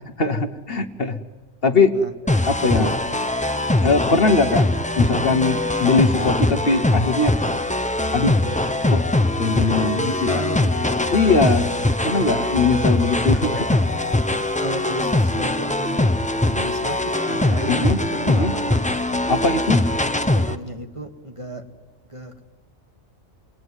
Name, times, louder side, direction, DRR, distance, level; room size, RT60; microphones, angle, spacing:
voice 1, 0.2-1.2 1.6-2.0 2.5-2.9 3.8-4.7 5.0-7.3 8.1-8.4 8.9-9.0 9.4-10.4 11.1-11.7 12.0-13.8 17.7-18.0 18.3-18.5 19.3-19.8, left 3 dB, 50° left, 7 dB, 1.3 m, -20 dB
sound 1, 2.3-20.5, left 1 dB, 10° left, 0.6 m, -22 dB
voice 2, 2.6-3.3 9.9-11.1 12.0-12.5 14.6-16.1 16.5-20.0 20.3-21.6 22.1-22.4, right 1 dB, 25° right, 5 dB, 1.5 m, -34 dB
28.0 x 20.0 x 9.7 m, 1.4 s
omnidirectional pair, 1.3 m